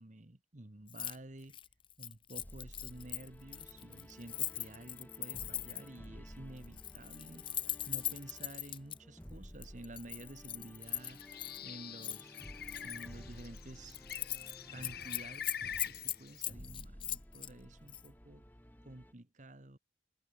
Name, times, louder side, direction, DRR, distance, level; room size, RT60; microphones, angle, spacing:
voice 1, 0.0-1.6 2.0-7.5 7.9-11.2 11.6-12.4 12.8-14.0 14.7-18.4 18.8-19.8, right 1 dB, 40° right, 1.4 m, -51 dB
Keys jangling, 0.9-1.2 1.4-6.0 6.6-9.0 9.6-11.6 12.0-13.1 13.4-13.6 13.9-14.5 14.8-17.5 17.9-18.1, left 11 dB, 25° left, 0.6 m, -40 dB
sound 1, 2.4-19.1, equal, 10° left, 2.6 m, -54 dB
Bird, 10.9-16.4, left 8 dB, 55° left, 3.1 m, -46 dB
head